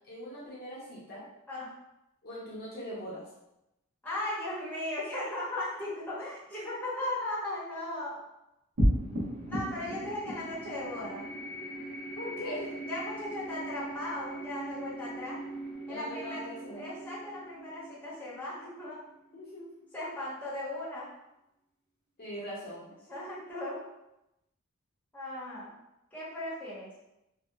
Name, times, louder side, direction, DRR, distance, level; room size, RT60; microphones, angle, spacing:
voice 1, 0.1-1.2 2.2-3.3 5.1-5.3 12.2-12.8 15.9-16.8 19.3-19.7 22.2-22.9, equal, 45° left, -7 dB, 0.8 m, -41 dB
voice 2, 4.0-8.2 9.5-11.3 12.8-15.4 15.9-16.4 16.8-19.0 19.9-21.1 23.1-23.8 25.1-25.8 26.1-26.9, left 1 dB, 10° left, -10 dB, 0.9 m, -37 dB
sound 1, 8.8-19.4, equal, 70° right, 0.9 m, -36 dB
2.8 x 2.1 x 2.3 m, 0.89 s
head